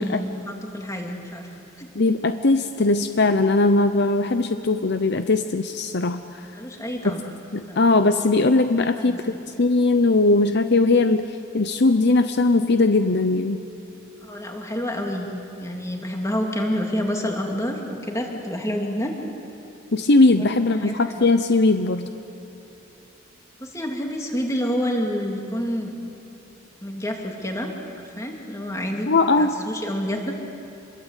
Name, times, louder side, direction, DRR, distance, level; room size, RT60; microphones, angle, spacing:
voice 1, 0.0-1.5 1.8-1.9 6.5-7.2 7.7-7.8 9.0-9.2 14.2-15.3 15.6-19.1 20.5-21.2 23.6-25.9 26.8-27.7 28.0-29.1 29.4-30.3, equal, 15° left, 1 dB, 2.9 m, -28 dB
voice 2, 1.9-6.5 7.0-7.2 7.5-13.6 19.9-22.1 29.1-29.5, left 3 dB, 55° left, 9 dB, 0.8 m, -20 dB
28.0 x 22.0 x 8.3 m, 2.9 s
head